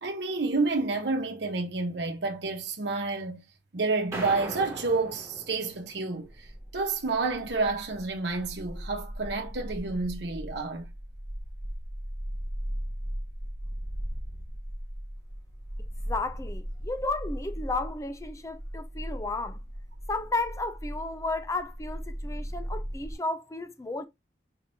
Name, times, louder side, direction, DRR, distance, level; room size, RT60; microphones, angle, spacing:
voice 1, 0.0-3.4 3.7-6.3 6.7-10.9, right 3 dB, 70° right, 1.0 m, -29 dB
sound 1, 4.1-6.5, right 2 dB, 15° right, 1.7 m, -40 dB
sound 2, 6.2-23.1, equal, 30° left, 1.0 m, -38 dB
voice 2, 16.0-19.6 20.1-24.0, left 2 dB, 15° left, 0.4 m, -33 dB
4.8 x 3.4 x 2.6 m
head